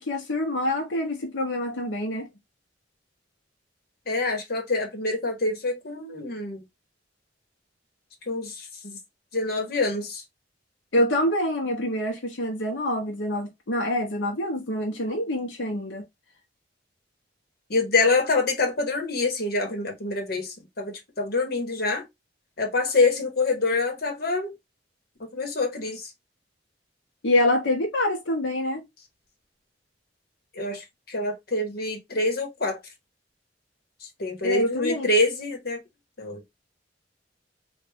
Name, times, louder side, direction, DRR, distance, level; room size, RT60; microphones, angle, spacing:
voice 1, 0.0-2.3 10.9-16.0 27.2-28.8 34.4-35.1, left 1 dB, 85° left, 0.9 m, -26 dB
voice 2, 4.1-6.6 8.3-9.0 9.3-10.2 17.7-22.1 22.6-24.5 25.3-26.1 30.5-32.8 34.2-35.8 36.2-36.4, left 3 dB, 55° left, 1.2 m, -26 dB
3.4 x 2.4 x 3.3 m
head